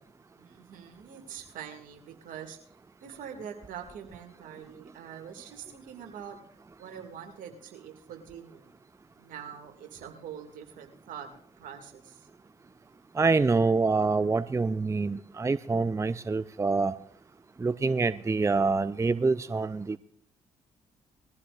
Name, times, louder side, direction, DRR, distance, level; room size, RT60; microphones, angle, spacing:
voice 1, 0.3-8.7 9.2-11.3 11.6-12.3, right 8 dB, 70° right, 4 dB, 2.4 m, -44 dB
voice 2, 13.2-16.9 17.6-20.0, right 4 dB, 20° right, 15 dB, 0.5 m, -26 dB
21.0 x 14.0 x 2.6 m, 0.63 s
hypercardioid pair, 50°, 14 cm